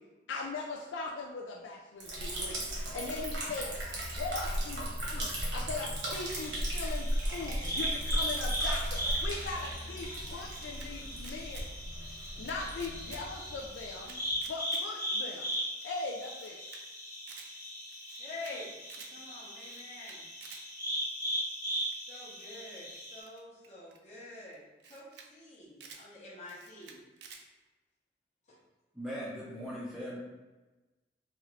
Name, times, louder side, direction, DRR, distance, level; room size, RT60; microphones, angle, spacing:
voice 1, 0.3-3.8 4.1-11.7 12.4-14.2 14.5-15.6 15.8-16.6, left 3 dB, 85° left, 0 dB, 0.3 m, -40 dB
Liquid, 2.0-14.5, equal, 85° right, 1.0 m, -36 dB
sound 1, 6.1-23.2, equal, 20° left, 1.0 m, -38 dB
Camera, 10.0-10.9 11.2-11.7 12.0-13.2 13.6-14.8 15.2-15.3 15.5-15.6 15.8-15.9 16.2-16.8 17.1-17.5 17.9-18.5 18.8-19.1 19.6-20.6 21.8-22.1 22.7-24.0 24.5-24.6 24.8-25.3 25.5-26.0 26.5-27.4, right 6 dB, 70° right, 0.4 m, -52 dB
voice 2, 18.2-20.6 22.1-27.0 28.5-28.6, left 2 dB, 40° left, -7 dB, 0.8 m, -47 dB
voice 3, 28.9-30.2, equal, 5° right, -8 dB, 0.5 m, -39 dB
2.9 x 2.4 x 3.0 m, 1.2 s
head